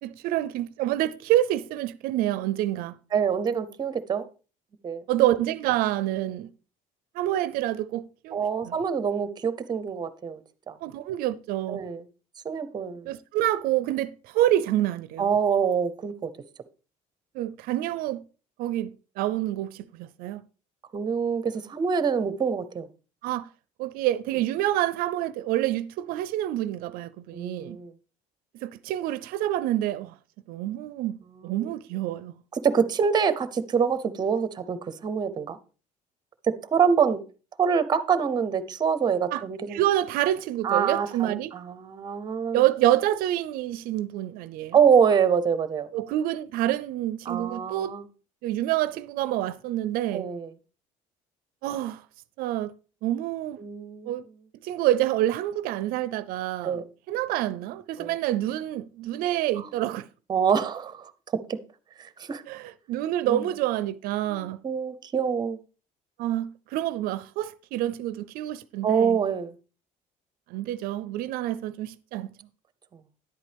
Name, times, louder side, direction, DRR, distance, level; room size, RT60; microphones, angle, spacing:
voice 1, 0.0-3.0 5.1-6.5 7.1-8.4 8.7-8.8 10.8-11.8 13.1-15.3 17.3-18.2 18.6-20.4 23.2-23.5 23.8-27.8 28.6-30.1 30.5-31.2 31.4-32.3 39.3-39.4 39.7-41.5 42.5-44.8 45.9-48.0 48.4-50.3 51.6-52.0 52.4-52.7 53.0-53.6 54.1-54.2 54.6-56.8 57.1-60.1 62.5-64.6 66.2-69.2 70.5-72.3, right 13 dB, 75° right, 0.4 m, -27 dB
voice 2, 3.1-4.3 4.8-5.0 8.3-10.4 10.7-10.8 11.7-12.0 12.4-13.1 15.2-16.3 20.9-22.9 27.3-27.9 31.4-31.7 32.5-35.6 36.4-37.2 37.6-39.8 40.6-42.6 44.7-45.9 47.3-48.1 50.1-50.5 53.6-54.1 56.6-56.9 58.0-58.1 59.6-59.7 60.3-61.6 62.0-62.4 63.2-63.5 64.2-65.6 68.8-69.5, right 6 dB, 30° right, 0.7 m, -25 dB
10.0 x 8.3 x 3.4 m
cardioid pair, 130°, 15 cm